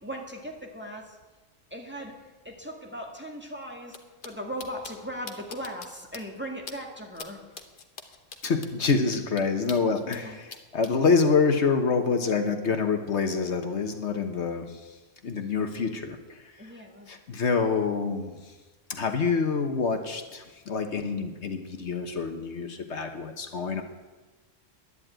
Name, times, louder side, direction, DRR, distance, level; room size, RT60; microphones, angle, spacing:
voice 1, 0.0-1.2 1.7-2.1 2.4-4.0 4.2-7.4 10.1-10.4 16.6-17.1, equal, 10° right, 0 dB, 1.9 m, -38 dB
sound 1, 3.9-4.0 4.2-4.3 4.6-4.9 5.3-5.9 6.1-6.2 6.7-6.8 7.1-7.3 7.5-10.2 10.5-10.9, left 4 dB, 45° left, 1.3 m, -41 dB
voice 2, 8.4-14.9 15.2-16.7 17.1-18.4 18.9-23.8, left 5 dB, 65° left, 6 dB, 1.4 m, -27 dB
11.0 x 10.5 x 8.9 m, 1.2 s
omnidirectional pair, 1.3 m